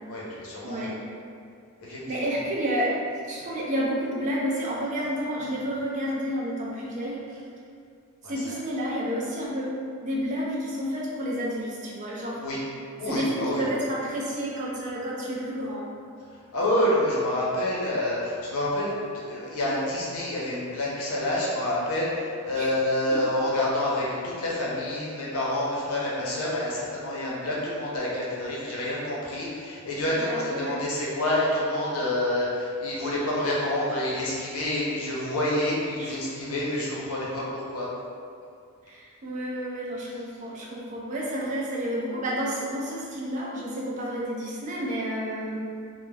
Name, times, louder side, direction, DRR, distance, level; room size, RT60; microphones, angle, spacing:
voice 1, 0.1-0.9 1.9-2.4 8.2-8.6 12.4-12.6 13.0-13.7 16.5-18.9 19.2-37.9, left 1 dB, 75° left, -6 dB, 0.7 m, -28 dB
voice 2, 0.6-0.9 1.9-3.0 3.3-7.4 8.2-9.7 10.0-12.4 13.1-15.9 22.5-22.7 23.1-23.2 30.2-30.8 36.0-36.2 38.9-45.6, equal, 35° right, -5 dB, 0.4 m, -30 dB
2.2 x 2.1 x 3.2 m, 2.3 s
head